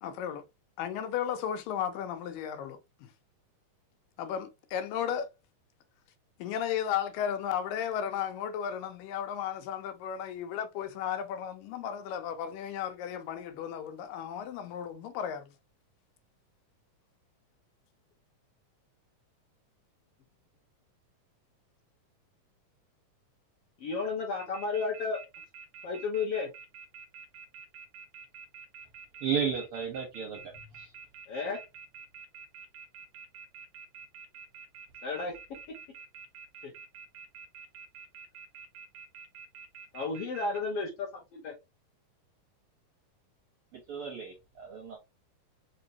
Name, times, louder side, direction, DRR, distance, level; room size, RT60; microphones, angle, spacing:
voice 1, 0.0-0.4 0.8-3.1 4.2-5.3 6.4-15.5, left 9 dB, 90° left, 2.3 m, -34 dB
voice 2, 23.8-25.2 25.8-26.5 31.3-31.6 35.0-35.4 36.6-36.7 39.9-41.5, left 4 dB, 70° left, 1.5 m, -33 dB
sound 1, 24.4-40.6, right 6 dB, 90° right, 1.4 m, -47 dB
voice 3, 29.2-30.9 43.7-45.0, right 7 dB, 70° right, 1.3 m, -34 dB
5.3 x 2.8 x 2.7 m
omnidirectional pair, 3.8 m